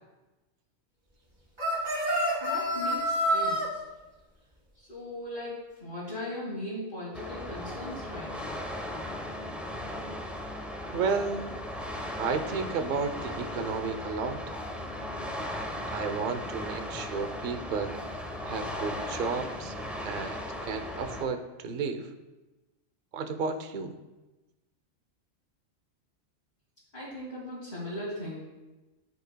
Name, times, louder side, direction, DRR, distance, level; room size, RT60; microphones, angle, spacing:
sound 1, 1.6-3.7, equal, 35° right, 2.9 m, -27 dB
voice 1, 2.4-3.8 4.8-8.6 26.9-28.4, left 1 dB, 45° left, -10 dB, 2.4 m, -38 dB
sound 2, 7.1-21.2, left 1 dB, ahead, 0.5 m, -37 dB
voice 2, 10.9-11.6 12.2-14.4 15.9-18.0 18.5-19.7 20.0-22.1 23.1-24.0, right 5 dB, 50° right, 7 dB, 0.7 m, -32 dB
13.5 x 5.4 x 2.2 m, 1.1 s
omnidirectional pair, 1.4 m